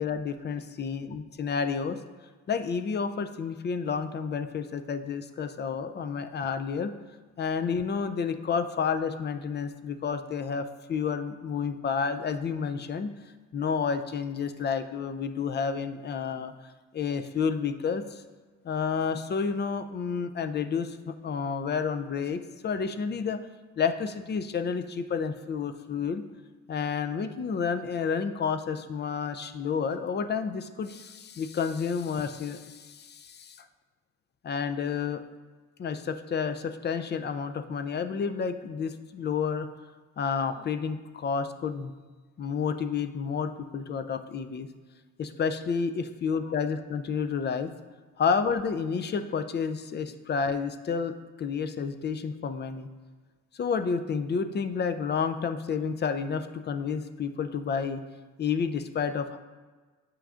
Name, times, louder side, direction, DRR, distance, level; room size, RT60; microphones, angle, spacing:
voice 1, 0.0-2.0 2.5-6.9 7.4-13.1 13.5-16.5 16.9-18.2 18.6-23.4 23.8-26.2 26.7-33.7 34.4-35.2 35.8-39.7 40.2-41.9 42.4-44.7 45.2-47.7 48.2-52.9 53.6-58.0 58.4-59.4, left 6 dB, 35° left, 9 dB, 0.4 m, -30 dB
8.1 x 5.8 x 2.5 m, 1.4 s
cardioid pair, 90°, 30 cm